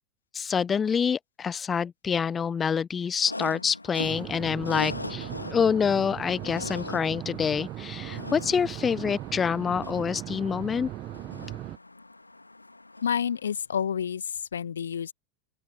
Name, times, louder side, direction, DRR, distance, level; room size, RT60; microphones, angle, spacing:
voice 1, 0.3-10.9, left 6 dB, 20° left, 0.8 m, -27 dB
sound 1, 3.2-13.5, left 2 dB, 85° left, 2.8 m, -41 dB
sound 2, 4.0-11.8, right 14 dB, 35° right, 1.3 m, -38 dB
voice 2, 13.0-15.1, left 8 dB, 70° left, 1.8 m, -29 dB
open air
figure-of-eight pair, 90°, 0 cm